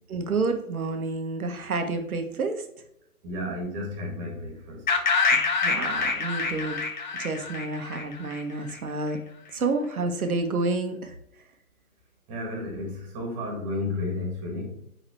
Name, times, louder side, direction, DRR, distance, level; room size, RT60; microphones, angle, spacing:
voice 1, 0.1-2.6 5.3-6.8 7.2-9.2 9.5-11.1, right 3 dB, 70° right, 6 dB, 1.4 m, -29 dB
voice 2, 3.2-4.8 12.3-14.8, left 2 dB, 20° right, -1 dB, 2.1 m, -32 dB
sound 1, 4.9-8.7, left 4 dB, 30° left, 0.7 m, -26 dB
8.9 x 3.9 x 3.2 m, 0.76 s
hypercardioid pair, 150°, 45 cm